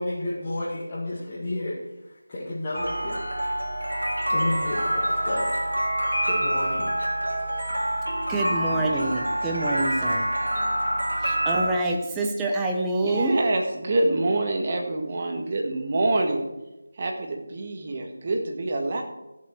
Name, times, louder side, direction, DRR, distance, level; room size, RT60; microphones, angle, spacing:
voice 1, 0.0-3.2 4.3-5.6 6.2-6.9, left 1 dB, 25° left, -9 dB, 2.1 m, -31 dB
sound 1, 2.7-11.7, right 1 dB, 85° right, 2.2 m, -26 dB
voice 2, 8.3-10.3 11.2-13.4, right 2 dB, 10° right, 0 dB, 0.9 m, -26 dB
voice 3, 13.0-16.5 17.0-19.0, right 2 dB, 35° right, 2 dB, 1.6 m, -26 dB
13.5 x 7.3 x 4.5 m, 1.0 s
figure-of-eight pair, 165°, 0 cm